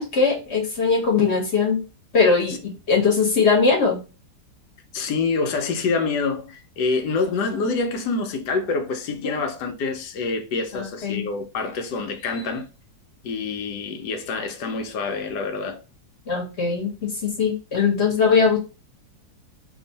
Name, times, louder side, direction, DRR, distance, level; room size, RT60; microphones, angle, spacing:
voice 1, 0.0-1.8 2.1-4.0 9.2-9.3 10.7-11.2 16.3-18.6, left 5 dB, 45° left, 1.3 m, -20 dB
voice 2, 4.9-12.7 13.2-15.8, left 4 dB, 80° left, 1.3 m, -26 dB
3.0 x 2.6 x 3.9 m
omnidirectional pair, 1.8 m